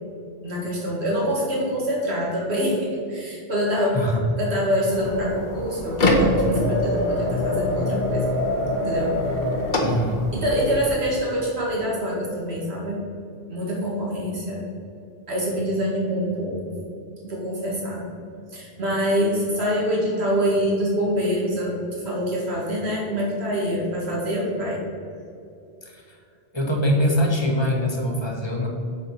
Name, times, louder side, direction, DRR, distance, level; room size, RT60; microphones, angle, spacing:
voice 1, 0.4-4.0 4.4-8.3 8.8-9.3 10.3-13.0 13.5-14.6 15.3-16.8 17.2-18.0 18.5-24.8, equal, 85° right, -4 dB, 2.3 m, -25 dB
sound 1, 4.9-10.9, left 1 dB, 50° left, 1.1 m, -24 dB
voice 2, 9.8-10.2 25.8-26.2 26.5-28.7, left 1 dB, 25° left, 0 dB, 1.1 m, -23 dB
7.3 x 4.5 x 5.8 m, 2.5 s
omnidirectional pair, 1.1 m